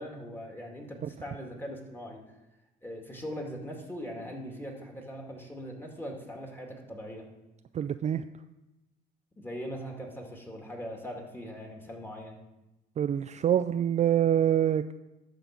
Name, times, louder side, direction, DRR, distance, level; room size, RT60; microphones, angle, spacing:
voice 1, 0.0-2.2 2.8-7.2 9.4-12.4, equal, 10° left, 0 dB, 2.1 m, -40 dB
voice 2, 7.7-8.2 13.0-14.9, right 10 dB, 40° right, 10 dB, 0.4 m, -25 dB
11.0 x 3.9 x 7.2 m, 1.0 s
cardioid pair, 95°, 19 cm